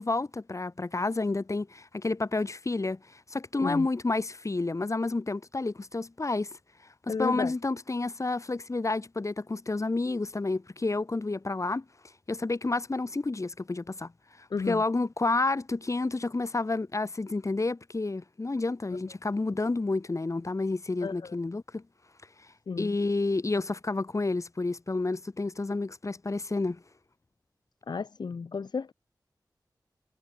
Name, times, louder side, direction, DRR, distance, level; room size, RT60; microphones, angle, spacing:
voice 1, 0.0-6.6 7.1-11.8 12.3-14.1 14.4-21.8 22.8-26.8, left 3 dB, 45° left, 3.5 m, -30 dB
voice 2, 7.1-7.5 14.5-14.8 18.9-19.0 21.0-21.4 22.7-22.9 27.9-28.9, left 5 dB, 75° left, 0.9 m, -32 dB
wide cardioid pair, 60°, 7 cm